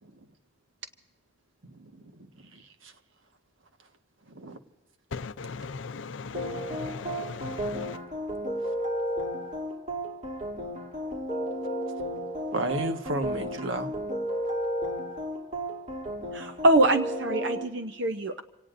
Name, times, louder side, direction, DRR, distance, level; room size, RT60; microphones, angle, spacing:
voice 1, 1.6-2.9 4.3-4.6 12.5-14.1, right 1 dB, 75° right, 1.5 m, -34 dB
voice 2, 5.1-8.0, left 4 dB, 70° left, 0.5 m, -38 dB
sound 1, 6.3-17.6, equal, 40° right, 3.0 m, -33 dB
voice 3, 16.3-18.4, right 2 dB, 60° right, 0.8 m, -24 dB
27.5 x 18.0 x 2.6 m
head